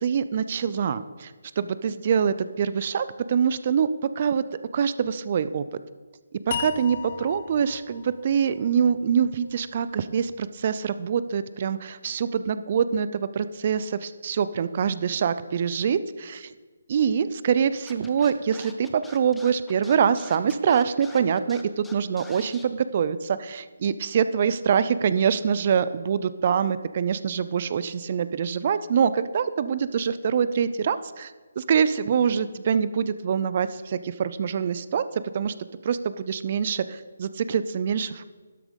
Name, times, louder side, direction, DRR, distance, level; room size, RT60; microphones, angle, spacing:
voice 1, 0.0-3.9 4.2-4.4 4.7-5.6 6.3-16.5 16.9-31.3 31.6-35.5 35.8-38.3, right 7 dB, 40° right, 14 dB, 0.5 m, -25 dB
sound 1, 6.5-9.7, left 7 dB, 45° left, 0.5 m, -37 dB
Scratching (performance technique), 17.9-22.6, left 2 dB, 5° left, 0.8 m, -46 dB
12.5 x 7.2 x 5.3 m, 1.4 s
figure-of-eight pair, 155°, 0 cm